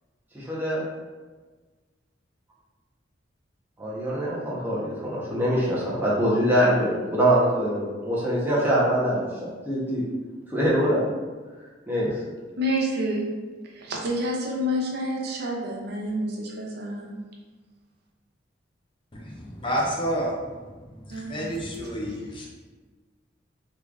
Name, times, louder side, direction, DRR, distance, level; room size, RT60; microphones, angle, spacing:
voice 1, 0.3-0.8 3.8-10.0 10.5-11.0 11.9-12.1, equal, 10° right, -7 dB, 0.9 m, -24 dB
voice 2, 12.6-13.3 13.7-17.2 21.1-21.5, equal, 60° right, -1 dB, 0.6 m, -28 dB
voice 3, 19.1-20.4 21.0-22.5, equal, 25° left, -3 dB, 0.6 m, -29 dB
3.7 x 3.1 x 2.4 m, 1.4 s
head